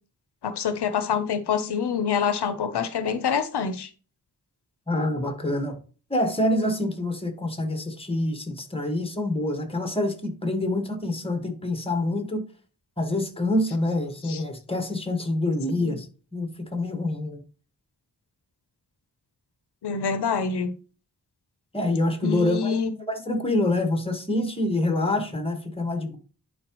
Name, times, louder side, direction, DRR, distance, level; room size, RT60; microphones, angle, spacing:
voice 1, 0.4-3.9 14.3-14.4 15.8-16.0 19.8-20.7 22.2-23.0, left 6 dB, 90° left, 11 dB, 0.8 m, -26 dB
voice 2, 4.9-5.8 6.1-12.4 13.0-17.4 21.7-22.8 23.1-26.2, left 1 dB, 15° left, 6 dB, 1.6 m, -26 dB
11.0 x 4.8 x 3.1 m, 0.37 s
wide cardioid pair, 115°, 39 cm